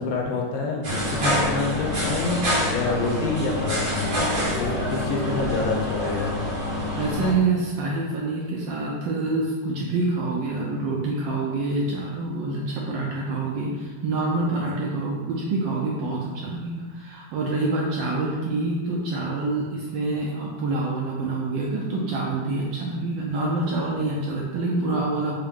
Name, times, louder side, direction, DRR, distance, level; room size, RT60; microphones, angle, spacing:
voice 1, 0.0-2.4 2.7-4.0 4.6-6.3 25.1-25.2, left 3 dB, 75° left, 0 dB, 1.4 m, -27 dB
sound 1, 0.8-7.3, left 1 dB, 55° right, 1.7 m, -26 dB
voice 2, 7.0-25.3, right 3 dB, 75° right, -3 dB, 1.1 m, -26 dB
4.6 x 2.0 x 3.4 m, 1.4 s
omnidirectional pair, 2.4 m